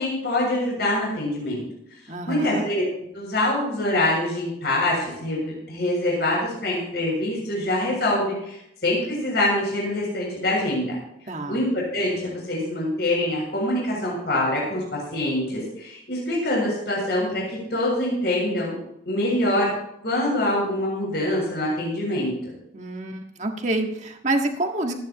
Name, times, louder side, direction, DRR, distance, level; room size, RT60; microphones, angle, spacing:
voice 1, 0.0-1.6 2.3-2.9 3.1-8.6 8.8-10.9 11.5-17.4 17.7-18.7 19.1-19.7 20.0-22.3, left 1 dB, 60° left, -4 dB, 7.3 m, -24 dB
voice 2, 2.1-2.6 11.3-11.6 22.7-24.9, right 2 dB, 40° right, 3 dB, 1.7 m, -27 dB
27.0 x 10.0 x 3.1 m, 0.78 s
head